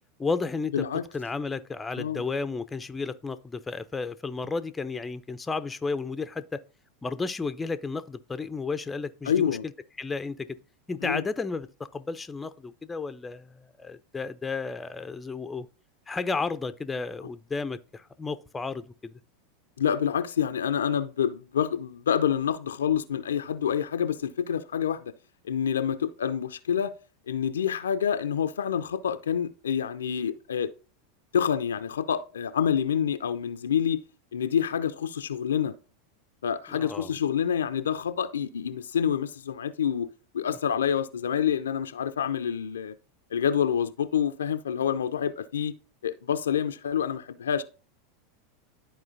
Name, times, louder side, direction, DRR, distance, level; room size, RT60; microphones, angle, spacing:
voice 1, 0.2-0.9 1.1-6.6 7.0-9.6 10.0-10.5 10.9-11.7 11.9-15.7 16.1-19.1 36.7-37.1, left 4 dB, 15° left, 0.5 m, -32 dB
voice 2, 0.7-1.0 2.0-2.2 9.3-9.6 11.0-11.2 19.8-25.1 25.5-26.9 27.3-30.7 31.3-34.0 34.3-35.7 36.4-40.1 40.3-42.9 43.3-45.7 46.0-47.6, left 8 dB, 75° left, 0.5 m, -27 dB
12.5 x 4.3 x 2.6 m
hypercardioid pair, 90°, 0 cm